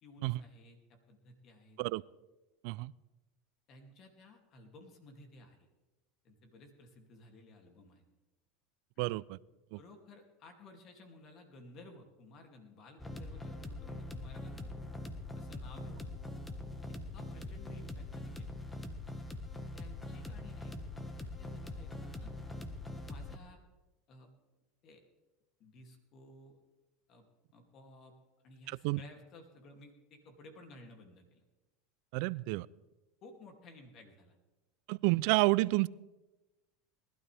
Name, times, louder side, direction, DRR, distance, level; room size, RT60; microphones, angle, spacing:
voice 1, 0.0-1.8 3.7-5.7 6.2-8.0 9.0-9.1 9.8-14.8 15.4-16.2 16.9-18.6 19.7-22.3 23.1-23.6 24.1-24.3 24.8-25.0 25.6-26.6 27.1-27.2 27.5-28.1 28.4-31.4 33.2-34.4, left 2 dB, 45° left, 4 dB, 2.5 m, -56 dB
voice 2, 9.0-9.4 9.7-9.8 28.7-29.0 32.1-32.7 34.9-35.9, right 23 dB, 65° right, 22 dB, 0.3 m, -30 dB
sound 1, 13.0-23.4, left 2 dB, 10° left, 1.4 m, -43 dB
19.5 x 12.5 x 3.4 m, 1.1 s
supercardioid pair, 105°, 0 cm